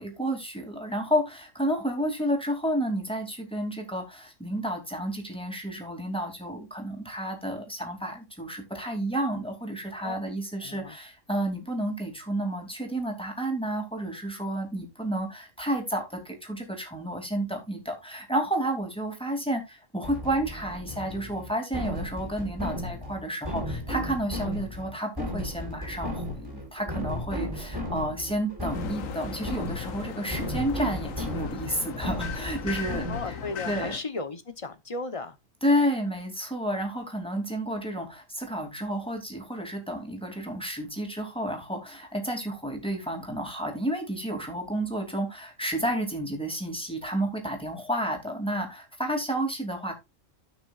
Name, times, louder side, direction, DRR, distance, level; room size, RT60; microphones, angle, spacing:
voice 1, 0.0-33.4 33.7-34.0 35.6-49.9, right 1 dB, 5° left, 2.7 m, -31 dB
voice 2, 10.6-11.0 33.1-35.4, left 3 dB, 30° left, 0.9 m, -35 dB
sound 1, 20.0-33.5, left 1 dB, 15° right, 3.2 m, -35 dB
sound 2, 28.7-34.0, left 9 dB, 90° left, 1.2 m, -38 dB
16.0 x 6.1 x 2.4 m
omnidirectional pair, 1.3 m